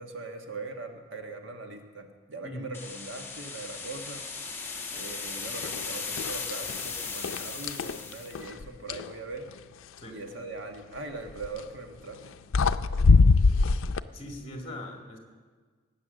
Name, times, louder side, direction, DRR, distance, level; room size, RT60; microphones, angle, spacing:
voice 1, 0.0-4.3 4.9-9.5 10.1-12.4 12.9-13.3, right 3 dB, 70° right, 4 dB, 1.4 m, -41 dB
sound 1, 2.7-8.4, left 4 dB, 10° left, 1.1 m, -37 dB
sound 2, 5.6-5.8 6.2-6.8 7.2-9.1 11.3-11.6 12.2-12.3 12.5-14.0, left 4 dB, 90° left, 0.5 m, -22 dB
voice 2, 14.1-15.2, left 1 dB, 30° left, 2 dB, 1.9 m, -40 dB
19.0 x 8.5 x 6.5 m, 1.5 s
head